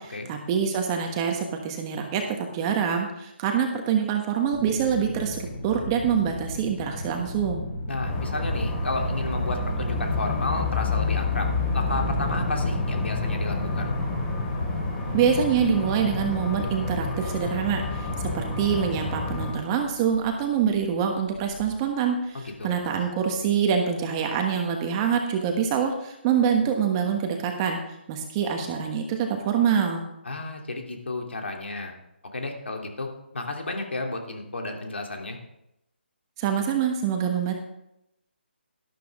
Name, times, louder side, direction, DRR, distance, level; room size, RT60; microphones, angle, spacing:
voice 1, 0.0-7.7 15.1-27.8 28.1-30.0 36.4-37.5, right 7 dB, 20° right, 3 dB, 1.3 m, -25 dB
sound 1, 4.5-21.9, left 1 dB, 30° left, 4.2 m, -33 dB
voice 2, 7.9-11.5 11.7-13.9 22.3-22.8 30.2-31.9 32.3-33.1 33.3-35.4, left 2 dB, 80° left, 2 dB, 2.9 m, -32 dB
sound 2, 8.0-19.5, left 3 dB, 15° left, 2.5 m, -30 dB
12.5 x 11.5 x 3.6 m, 0.82 s
figure-of-eight pair, 155°, 6 cm